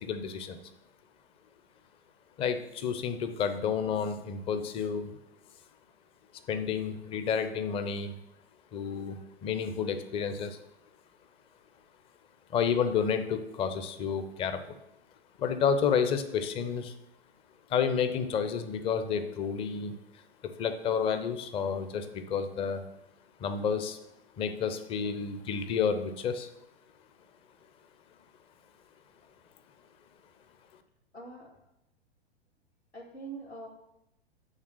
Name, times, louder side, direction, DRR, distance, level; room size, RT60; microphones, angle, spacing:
voice 1, 0.0-0.6 2.4-5.1 6.5-8.1 8.7-10.6 12.5-14.6 15.4-16.9 17.7-19.9 20.6-22.8 23.4-24.0 24.4-26.5, left 6 dB, 20° left, 10 dB, 0.5 m, -30 dB
voice 2, 31.1-31.5 32.9-33.7, right 3 dB, 85° left, -2 dB, 2.2 m, -43 dB
8.8 x 3.4 x 6.2 m, 0.84 s
figure-of-eight pair, 105°, 32 cm